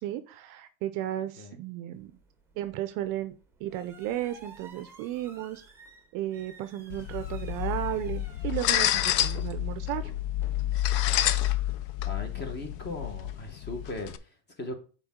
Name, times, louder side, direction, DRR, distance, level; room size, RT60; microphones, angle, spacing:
voice 1, 0.0-2.1 2.6-3.4 3.6-5.6 6.1-10.1, right 13 dB, 50° right, 12 dB, 0.5 m, -34 dB
sound 1, 1.9-10.5, right 3 dB, 5° right, 0.9 m, -54 dB
sound 2, 6.9-14.2, left 13 dB, 60° left, 0.6 m, -29 dB
voice 2, 12.0-14.7, left 2 dB, 25° left, 5 dB, 1.3 m, -38 dB
7.0 x 4.3 x 3.6 m, 0.37 s
supercardioid pair, 140°, 44 cm